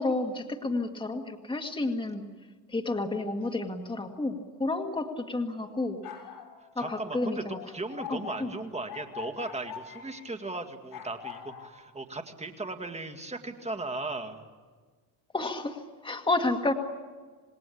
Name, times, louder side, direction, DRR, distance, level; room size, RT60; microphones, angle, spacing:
voice 1, 0.0-2.2 2.7-6.0 6.8-7.6 8.1-8.5 15.3-16.7, left 2 dB, 15° left, 5 dB, 1.9 m, -30 dB
sound 1, 5.7-10.2 10.9-11.7, left 9 dB, 75° left, 6.8 m, -43 dB
voice 2, 6.6-14.4, right 2 dB, 15° right, 6 dB, 2.1 m, -37 dB
27.5 x 20.0 x 8.6 m, 1.5 s
cardioid pair, 125°, 38 cm